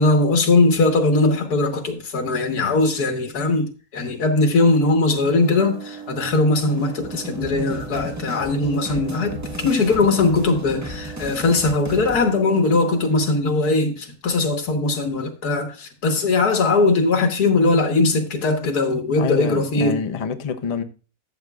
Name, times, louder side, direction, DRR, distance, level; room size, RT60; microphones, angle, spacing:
voice 1, 0.0-20.0, left 3 dB, 85° left, 1.9 m, -20 dB
sound 1, 5.3-13.1, right 5 dB, 50° right, 3.3 m, -38 dB
sound 2, 6.7-12.2, equal, 15° right, 0.7 m, -35 dB
voice 2, 19.2-20.8, left 6 dB, 40° left, 0.5 m, -26 dB
13.0 x 7.8 x 2.4 m
omnidirectional pair, 1.6 m